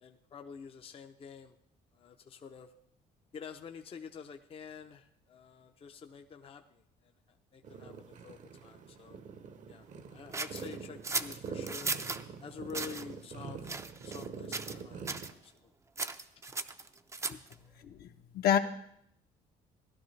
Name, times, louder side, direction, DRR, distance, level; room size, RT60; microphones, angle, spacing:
voice 1, 0.0-1.5 1.9-2.7 3.3-7.1 7.5-9.2 9.7-11.9 12.4-13.7 14.0-15.7 17.3-17.4, left 6 dB, 35° left, 6 dB, 0.6 m, -48 dB
sound 1, 7.6-15.3, right 5 dB, 45° right, 0.8 m, -45 dB
sound 2, 10.3-12.2 12.7-13.0 13.6-14.3 14.5-14.8 15.1-15.3 16.0-17.5, right 3 dB, 15° right, 0.5 m, -36 dB
voice 2, 17.8-18.6, left 9 dB, 65° left, 5 dB, 0.9 m, -28 dB
16.5 x 11.5 x 3.2 m, 0.73 s
cardioid pair, 110°, 17 cm